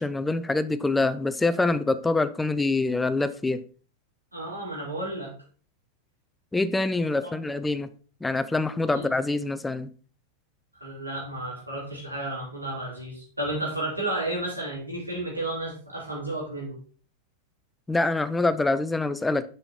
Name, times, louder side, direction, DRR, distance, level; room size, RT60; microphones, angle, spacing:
voice 1, 0.0-3.6 6.5-7.9 8.2-9.9 17.9-19.5, left 2 dB, 10° left, 0.5 m, -25 dB
voice 2, 4.3-5.3 7.2-7.4 8.9-9.1 10.8-16.8, right 1 dB, 85° right, 3.5 m, -32 dB
6.9 x 5.5 x 4.3 m
figure-of-eight pair, 90°, 0 cm